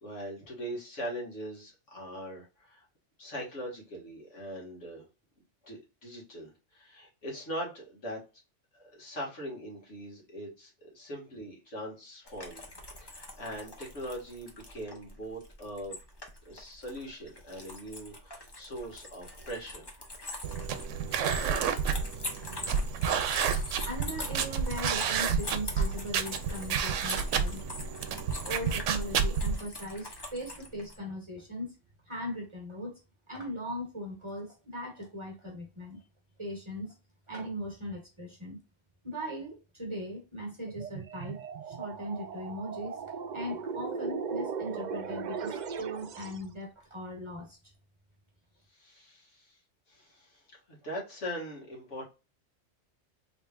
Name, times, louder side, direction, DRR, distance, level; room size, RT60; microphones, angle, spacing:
voice 1, 0.0-2.9 3.2-5.1 5.6-8.2 8.7-12.6 13.0-16.0 16.5-19.9 48.7-49.6 49.9-52.1, equal, 75° left, -3 dB, 2.0 m, -41 dB
sound 1, 12.2-31.0, left 1 dB, 25° left, 0.8 m, -43 dB
sound 2, 20.4-29.6, right 6 dB, 80° right, 0.9 m, -30 dB
voice 2, 23.8-27.7 28.4-31.7 32.1-32.9 33.3-36.0 36.4-36.9 37.3-38.6 39.0-41.4 41.7-43.0 43.3-47.6, equal, 25° right, -1 dB, 1.2 m, -39 dB
sound 3, 40.7-46.5, right 6 dB, 65° right, 0.4 m, -38 dB
3.9 x 3.4 x 2.3 m, 0.30 s
omnidirectional pair, 1.2 m